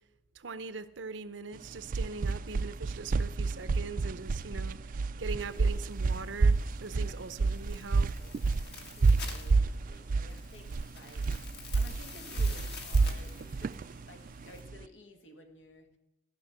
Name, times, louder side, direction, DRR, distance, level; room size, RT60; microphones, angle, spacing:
voice 1, 0.3-8.1, right 4 dB, 80° right, 0.7 m, -41 dB
sound 1, 1.6-14.8, right 4 dB, 50° right, 0.4 m, -29 dB
sound 2, 5.4-14.6, left 5 dB, 60° left, 2.0 m, -49 dB
voice 2, 6.8-7.3 8.6-15.9, left 1 dB, 90° left, 1.9 m, -54 dB
14.5 x 6.1 x 8.1 m
head